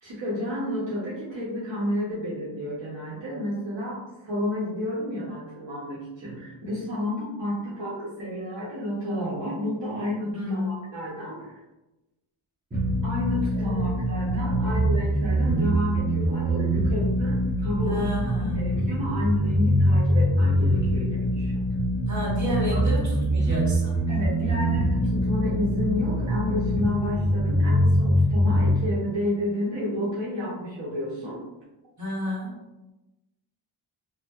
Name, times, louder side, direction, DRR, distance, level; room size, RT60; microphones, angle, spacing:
voice 1, 0.0-11.6 13.0-18.1 18.4-21.6 22.7-23.2 24.1-31.4, left 1 dB, 60° right, -8 dB, 0.8 m, -31 dB
voice 2, 10.3-10.8 13.5-13.9 17.8-18.7 22.1-24.0 32.0-32.6, equal, 35° right, -5 dB, 1.0 m, -31 dB
sound 1, 12.7-28.7, equal, 20° right, 0.7 m, -24 dB
2.6 x 2.0 x 2.3 m, 1.0 s
wide cardioid pair, 85°, 49 cm